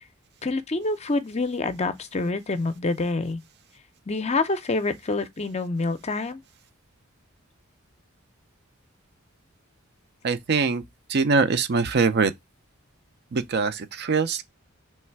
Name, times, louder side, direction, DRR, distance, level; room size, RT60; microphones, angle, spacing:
voice 1, 0.4-3.4 4.1-6.4, left 3 dB, 30° left, 0.5 m, -27 dB
voice 2, 10.2-10.8 11.1-12.3 13.3-14.4, right 4 dB, 50° right, 0.5 m, -23 dB
3.3 x 3.2 x 4.4 m
head